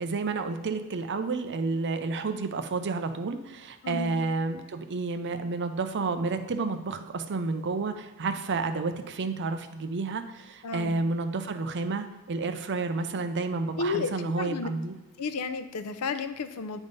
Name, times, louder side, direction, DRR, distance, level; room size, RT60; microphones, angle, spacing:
voice 1, 0.0-14.9, right 3 dB, 55° right, 8 dB, 0.6 m, -30 dB
voice 2, 3.8-4.1 10.6-10.9 13.8-14.7 15.2-16.8, left 4 dB, 90° left, 10 dB, 0.6 m, -32 dB
9.3 x 3.6 x 5.3 m, 1.1 s
head